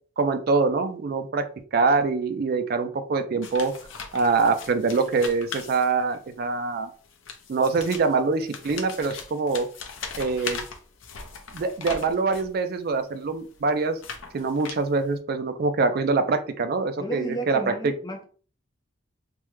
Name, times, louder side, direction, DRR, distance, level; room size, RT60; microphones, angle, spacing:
voice 1, 0.2-3.7 4.1-6.9 7.5-9.7 10.2-10.6 11.5-14.0 14.3-17.9, right 4 dB, 50° right, 10 dB, 0.3 m, -24 dB
sound 1, 3.4-6.3 7.0-12.6 13.2-15.1, left 5 dB, 70° left, 0.6 m, -39 dB
voice 2, 17.0-18.3, right 2 dB, 20° left, 3 dB, 0.5 m, -33 dB
3.4 x 2.1 x 3.1 m, 0.42 s
head